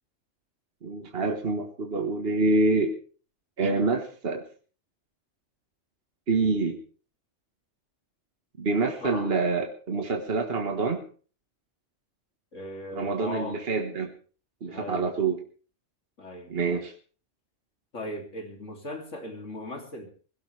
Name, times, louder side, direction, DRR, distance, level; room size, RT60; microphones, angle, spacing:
voice 1, 0.8-2.9 3.6-4.4 6.3-6.8 8.6-11.0 12.9-14.1 14.6-15.4 16.5-16.9, right 3 dB, 55° right, 4 dB, 1.8 m, -26 dB
voice 2, 9.0-9.3 12.5-13.6 14.7-15.1 16.2-16.5 17.9-20.1, left 1 dB, 90° left, 3 dB, 3.3 m, -38 dB
21.0 x 17.0 x 3.4 m, 0.41 s
omnidirectional pair, 1.2 m